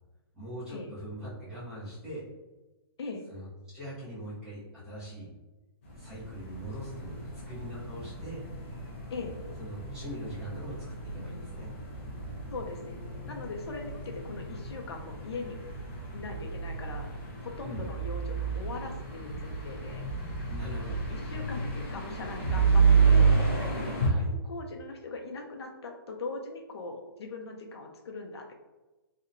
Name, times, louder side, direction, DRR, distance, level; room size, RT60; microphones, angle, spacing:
voice 1, 0.3-2.2 3.3-5.3 6.0-7.2 7.5-8.4 9.6-11.7 17.6-17.9 20.5-21.0 24.0-24.3, equal, 5° right, -12 dB, 0.7 m, -41 dB
sound 1, 5.9-24.1, right 5 dB, 30° left, 0.4 m, -30 dB
voice 2, 12.5-13.0 13.3-15.6 16.1-20.0 21.1-23.4 24.3-28.6, left 3 dB, 90° left, 2 dB, 0.5 m, -40 dB
2.7 x 2.1 x 2.5 m, 1.1 s
hypercardioid pair, 175°, 13 cm